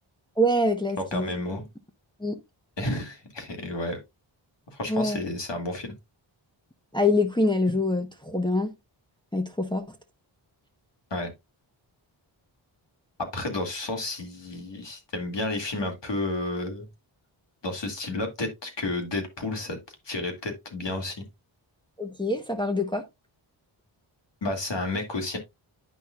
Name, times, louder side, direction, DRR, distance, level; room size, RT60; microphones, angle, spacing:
voice 1, 0.4-1.3 2.2-2.4 4.9-5.2 6.9-8.7 9.3-9.8 22.0-23.0, left 1 dB, 10° left, 1.0 m, -25 dB
voice 2, 1.1-1.6 2.8-4.0 4.7-5.9 11.1-11.3 13.2-16.9 17.6-19.8 20.1-21.2 24.4-25.4, left 2 dB, 60° left, 2.3 m, -31 dB
9.6 x 5.5 x 2.4 m
cardioid pair, 60°, 49 cm